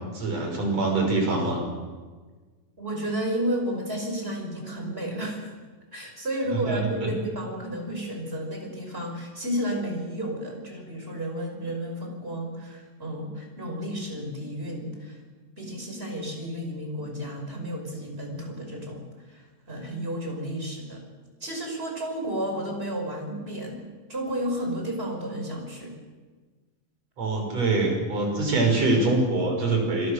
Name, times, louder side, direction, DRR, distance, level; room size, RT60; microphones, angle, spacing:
voice 1, 0.1-1.6 6.5-7.1 27.2-30.1, right 2 dB, 45° right, 2 dB, 6.8 m, -24 dB
voice 2, 2.8-5.5 5.9-15.2 15.6-21.0 21.4-26.0, equal, 15° right, 2 dB, 5.6 m, -32 dB
28.0 x 22.0 x 6.7 m, 1.4 s
omnidirectional pair, 4.1 m